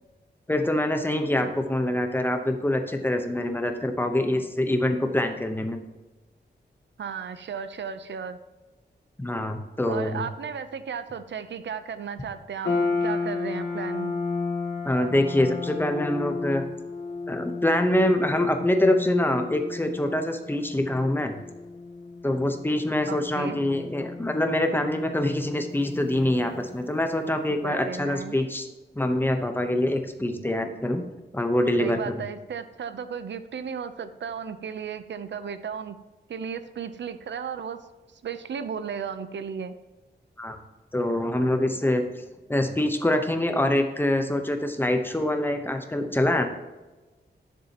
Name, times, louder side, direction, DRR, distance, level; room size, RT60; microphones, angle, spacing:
voice 1, 0.5-5.8 9.2-10.3 14.8-16.6 17.3-21.3 22.2-28.7 28.9-31.0 31.3-32.2 40.4-40.6 40.9-42.0 42.5-46.5, left 1 dB, 10° left, 5 dB, 0.8 m, -25 dB
voice 2, 7.0-8.4 9.8-14.1 23.1-23.6 27.5-28.4 31.8-36.0 36.3-37.8 38.2-39.8, right 7 dB, 80° right, 11 dB, 0.6 m, -35 dB
sound 1, 12.6-27.1, left 4 dB, 90° left, 1.8 m, -33 dB
11.0 x 6.8 x 2.9 m, 1.1 s
wide cardioid pair, 165°, 18 cm